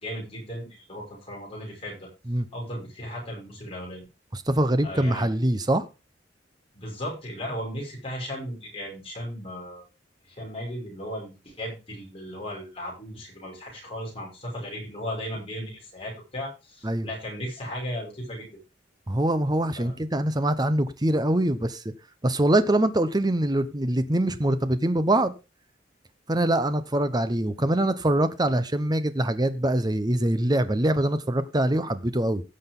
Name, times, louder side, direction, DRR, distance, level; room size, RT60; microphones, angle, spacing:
voice 1, 0.0-2.1 2.5-4.0 4.8-5.3 6.7-9.9 10.2-18.6 19.8-19.9, equal, 30° left, 6.2 m, -36 dB
voice 2, 4.3-5.8 16.8-17.1 19.1-21.8 22.2-25.3 26.3-32.4, right 1 dB, 20° right, 0.9 m, -24 dB
16.5 x 6.4 x 3.8 m
head